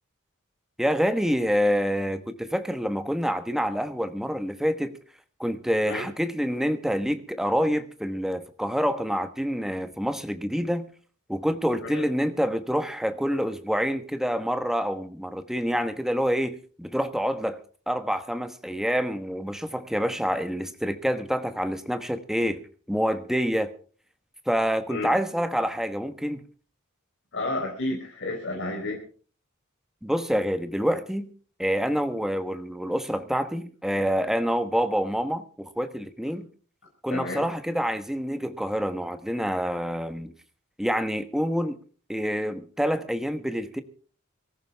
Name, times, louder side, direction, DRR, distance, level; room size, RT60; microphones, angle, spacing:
voice 1, 0.8-5.0 5.4-10.9 11.3-17.6 17.9-22.6 22.9-23.7 24.5-26.4 30.0-31.3 31.6-36.5 37.0-40.3 40.8-41.8 42.1-43.8, equal, ahead, 1.2 m, -27 dB
voice 2, 27.3-29.0 37.1-37.4, left 2 dB, 60° left, 4.1 m, -31 dB
23.5 x 14.5 x 3.5 m
head